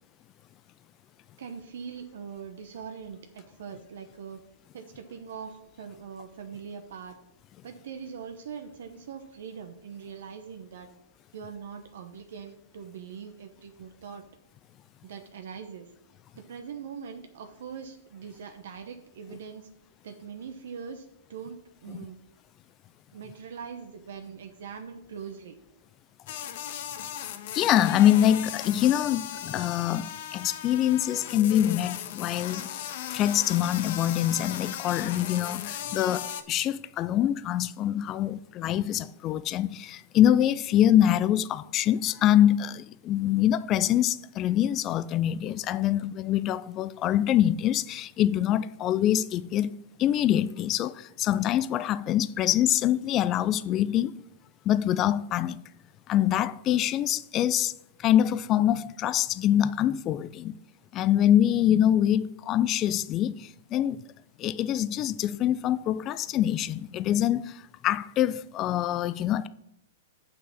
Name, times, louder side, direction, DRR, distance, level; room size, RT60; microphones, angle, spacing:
voice 1, 1.4-4.4 4.7-7.2 7.6-10.9 11.3-14.2 15.0-15.9 16.3-19.7 20.0-22.2 23.1-25.6, right 6 dB, 70° right, 0.9 m, -42 dB
sound 1, 26.3-36.4, left 10 dB, 60° left, 0.8 m, -37 dB
voice 2, 27.5-49.7 50.0-54.2 54.7-55.6 56.1-57.7 58.0-60.5 60.9-64.0 64.4-69.5, left 11 dB, 30° left, 0.4 m, -25 dB
6.1 x 5.9 x 7.2 m
hypercardioid pair, 130°, 0 cm